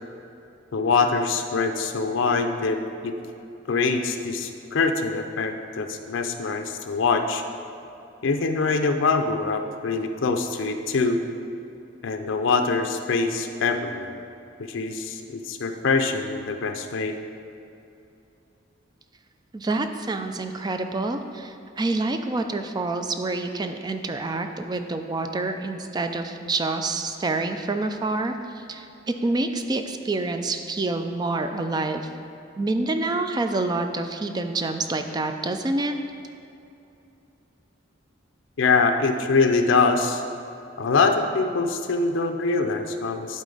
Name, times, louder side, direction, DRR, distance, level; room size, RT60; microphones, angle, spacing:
voice 1, 0.7-3.2 3.7-7.4 8.2-11.2 12.0-14.2 14.7-17.2 38.6-40.2 40.8-43.4, left 4 dB, 80° left, 5 dB, 0.5 m, -24 dB
voice 2, 19.5-28.9 29.2-32.1 32.6-35.9, right 2 dB, 20° right, 7 dB, 0.4 m, -27 dB
11.5 x 4.1 x 3.9 m, 2.8 s
head